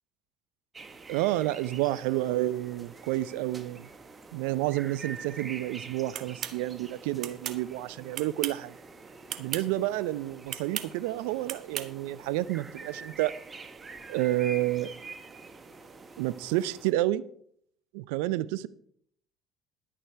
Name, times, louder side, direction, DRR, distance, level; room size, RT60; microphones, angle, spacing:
sound 1, 0.7-16.9, right 3 dB, 35° right, 1.5 m, -46 dB
voice 1, 1.1-3.9 4.3-8.7 9.4-13.3 14.1-14.9 16.2-17.2 17.9-18.7, right 16 dB, 80° right, 0.5 m, -30 dB
sound 2, 6.1-6.6 7.2-7.6 8.1-8.7 9.3-9.7 10.5-10.9 11.5-11.9, right 10 dB, 60° right, 1.0 m, -35 dB
11.5 x 9.9 x 4.6 m
hypercardioid pair, 65°, 0 cm